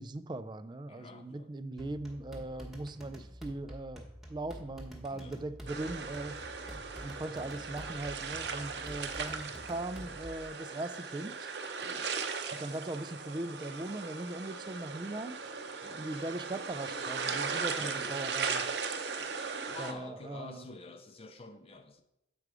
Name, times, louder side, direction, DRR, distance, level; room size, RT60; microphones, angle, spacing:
voice 1, 0.0-6.4 7.0-11.5 12.6-15.4 16.0-18.6 19.8-20.7, right 2 dB, 25° right, 0.3 m, -40 dB
voice 2, 0.9-1.5 2.4-2.7 5.1-5.5 6.4-6.9 11.8-12.2 15.8-16.1 17.8-18.1 19.7-22.0, left 3 dB, 30° left, 0.5 m, -49 dB
sound 1, 1.8-10.5, equal, ahead, 1.1 m, -48 dB
sound 2, 5.7-19.9, right 5 dB, 65° right, 0.7 m, -38 dB
7.8 x 4.9 x 4.7 m
head